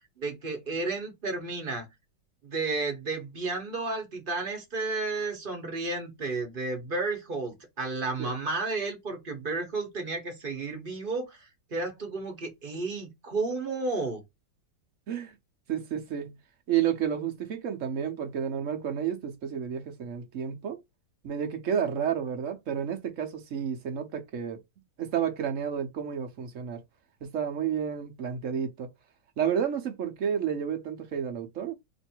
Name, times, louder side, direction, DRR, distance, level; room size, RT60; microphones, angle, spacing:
voice 1, 0.2-1.9 2.4-14.2, right 3 dB, 35° right, 1.1 m, -32 dB
voice 2, 15.7-16.4 16.7-20.8 21.2-24.6 25.0-26.8 27.2-28.9 29.4-31.7, right 8 dB, 55° right, 1.0 m, -31 dB
3.0 x 2.6 x 4.4 m
omnidirectional pair, 1.9 m